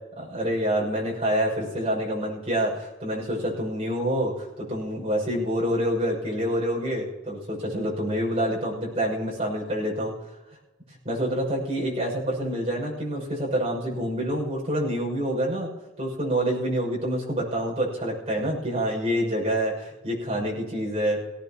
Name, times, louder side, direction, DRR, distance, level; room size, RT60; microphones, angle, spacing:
voice 1, 0.2-10.1 11.0-15.7 16.0-21.2, equal, 35° right, -4 dB, 6.3 m, -27 dB
18.5 x 17.5 x 3.0 m, 1.1 s
head